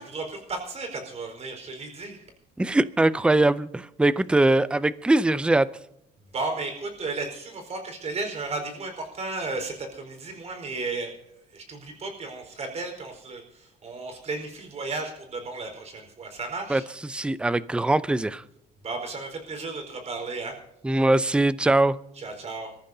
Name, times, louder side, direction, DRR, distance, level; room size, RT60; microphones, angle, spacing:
voice 1, 0.1-2.2 6.3-11.1 11.5-16.8 18.8-20.6 22.2-22.7, right 3 dB, 40° right, 4 dB, 4.6 m, -34 dB
voice 2, 2.6-5.7 16.7-18.4 20.8-22.0, right 2 dB, 5° right, 16 dB, 0.5 m, -22 dB
26.5 x 14.0 x 2.8 m, 0.80 s
cardioid pair, 110°, 17 cm